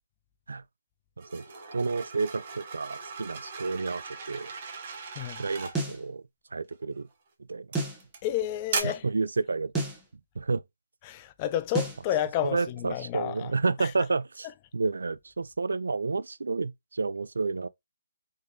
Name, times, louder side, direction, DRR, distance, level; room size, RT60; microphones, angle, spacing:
sound 1, 1.2-5.8 6.7-7.0 7.7-8.2 8.7-8.8, right 5 dB, 35° right, 0.7 m, -37 dB
voice 1, 1.7-4.5 5.4-6.2 6.5-7.1 7.5-7.7 8.8-9.9 10.4-10.6 12.4-14.5 14.7-17.7, right 4 dB, 80° right, 0.3 m, -30 dB
sound 2, 5.7-6.0 7.7-8.0 9.7-10.0 11.7-12.0, right 2 dB, 5° right, 0.8 m, -30 dB
voice 2, 8.2-9.0 11.0-13.5 13.8-13.9, left 11 dB, 20° left, 0.3 m, -30 dB
3.6 x 3.1 x 2.6 m
hypercardioid pair, 165°, 0 cm